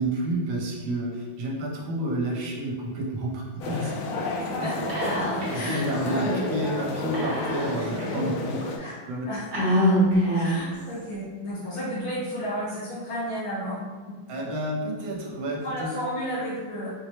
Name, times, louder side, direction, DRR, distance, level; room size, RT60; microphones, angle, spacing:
voice 1, 0.0-4.0 4.6-4.7 5.5-8.6 9.1-9.3 14.3-15.9, right 1 dB, 75° right, -1 dB, 1.4 m, -30 dB
sound 1, 3.6-8.8, left 2 dB, 90° left, 0.8 m, -30 dB
Whispering, 4.9-5.6 5.9-6.0 7.1-8.0 8.6-8.7 9.5-10.7, equal, 45° right, 1.1 m, -24 dB
voice 2, 5.0-6.4 7.7-8.3 8.8-9.0 9.2-9.5 9.7-10.0 10.3-13.8 15.6-16.9, equal, 55° left, -9 dB, 0.7 m, -33 dB
4.3 x 2.1 x 2.9 m, 1.4 s
omnidirectional pair, 2.2 m